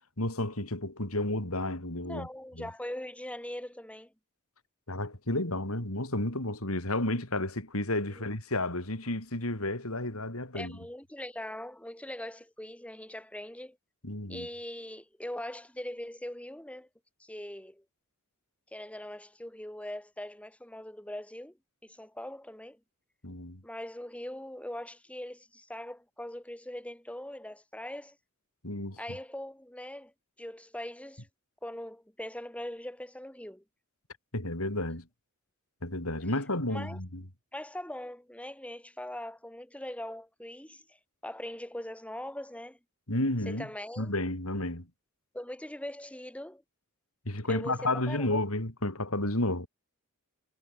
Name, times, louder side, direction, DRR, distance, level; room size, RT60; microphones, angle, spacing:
voice 1, 0.2-2.3 2.6-2.7 4.9-10.8 14.0-14.5 23.2-23.6 28.6-29.0 34.3-35.1 35.8-37.2 43.1-43.7 44.0-44.9 47.3-49.7, left 1 dB, 70° left, 6.0 m, -31 dB
voice 2, 2.0-4.1 8.1-8.3 10.5-13.8 14.3-16.9 17.2-17.8 18.7-21.5 21.8-22.8 23.6-28.2 29.0-30.1 30.4-31.3 31.6-33.6 36.7-37.0 37.5-40.8 41.2-42.8 43.5-44.1 45.3-46.6 47.5-48.4, left 1 dB, 5° left, 6.3 m, -41 dB
head